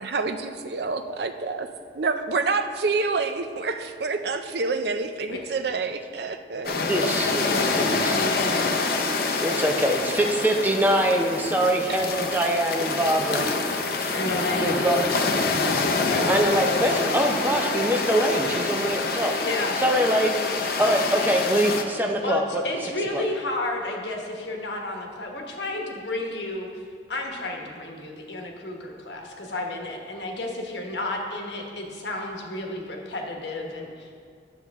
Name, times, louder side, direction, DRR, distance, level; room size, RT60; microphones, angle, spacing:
voice 1, 0.0-1.7 1.9-6.9, right 4 dB, 65° right, 8 dB, 0.5 m, -27 dB
sound 1, 6.6-21.8, left 3 dB, 55° left, 0.6 m, -26 dB
voice 2, 6.7-8.2 9.4-13.5 14.5-15.4 16.3-22.6 23.1-23.2, right 1 dB, 10° right, 2 dB, 0.6 m, -24 dB
voice 3, 7.5-9.1 14.1-14.8 16.0-16.3 19.4-19.8 22.2-26.8 27.1-34.1, left 2 dB, 75° left, 1 dB, 1.2 m, -31 dB
10.5 x 7.0 x 3.5 m, 2.1 s
head